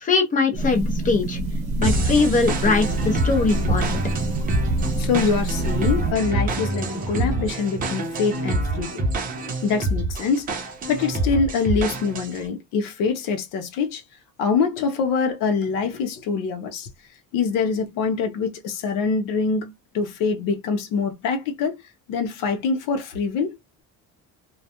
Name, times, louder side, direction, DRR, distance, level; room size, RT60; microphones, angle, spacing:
voice 1, 0.0-1.4 1.8-4.0, left 4 dB, 25° left, 0.6 m, -21 dB
sound 1, 0.5-6.1, right 2 dB, 85° right, 0.9 m, -27 dB
sound 2, 1.8-12.5, right 2 dB, 25° right, 0.5 m, -26 dB
voice 2, 5.0-9.0 9.6-10.5 10.9-14.0 14.4-16.9 17.3-21.8 22.1-23.6, left 5 dB, 80° left, 0.7 m, -24 dB
2.3 x 2.1 x 2.8 m
cardioid pair, 175°, 33 cm